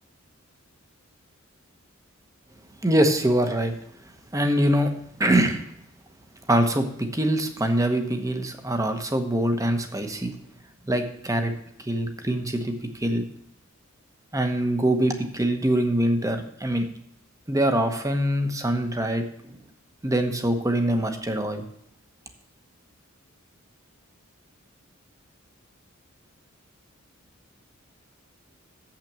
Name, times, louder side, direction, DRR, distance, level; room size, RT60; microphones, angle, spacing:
voice 1, 2.8-3.7 4.3-4.9 5.2-5.7 6.5-10.3 10.9-11.5 11.8-13.2 14.3-16.9 17.5-19.6 20.0-21.6, right 1 dB, 15° right, 6 dB, 1.0 m, -24 dB
7.5 x 6.0 x 7.4 m, 0.74 s
head